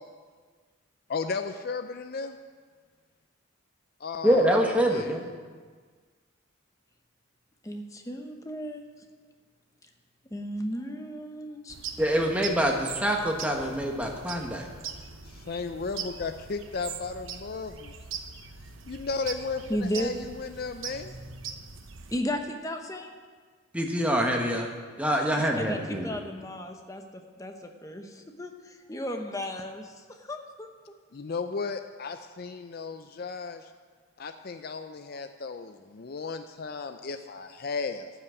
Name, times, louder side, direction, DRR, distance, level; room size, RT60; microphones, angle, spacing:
voice 1, 1.1-2.4 4.0-5.3 15.2-17.9 18.4-18.5 18.9-21.1 31.1-33.7 34.2-38.1, left 4 dB, 45° left, 8 dB, 0.4 m, -35 dB
voice 2, 4.2-5.2 12.0-14.6 23.7-24.7 25.0-26.2, equal, 5° right, 1 dB, 1.2 m, -25 dB
voice 3, 7.6-8.8 10.3-11.8 19.7-20.1 22.1-23.1 25.2-25.8 26.0-30.7, equal, 15° left, 4 dB, 0.9 m, -34 dB
sound 1, 11.7-22.2, right 6 dB, 70° right, 0.8 m, -41 dB
14.0 x 6.0 x 8.1 m, 1.5 s
head